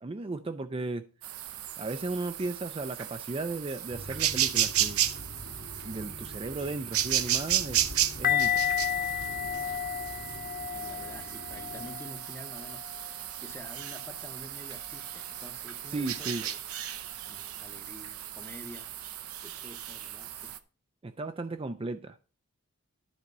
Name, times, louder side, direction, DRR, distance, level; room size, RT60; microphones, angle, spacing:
voice 1, 0.0-1.1 1.8-5.0 5.8-7.8 8.2-8.6 15.9-16.5 21.0-22.2, right 3 dB, 25° right, 0.4 m, -35 dB
sound 1, 1.2-20.6, right 11 dB, 75° right, 0.8 m, -34 dB
sound 2, 3.9-11.9, left 1 dB, 70° left, 2.0 m, -45 dB
sound 3, 8.2-13.2 13.8-14.0, left 10 dB, 40° left, 0.4 m, -32 dB
voice 2, 10.7-16.6 17.3-18.9 19.4-20.5, left 1 dB, 10° left, 0.9 m, -49 dB
11.0 x 4.2 x 6.6 m
head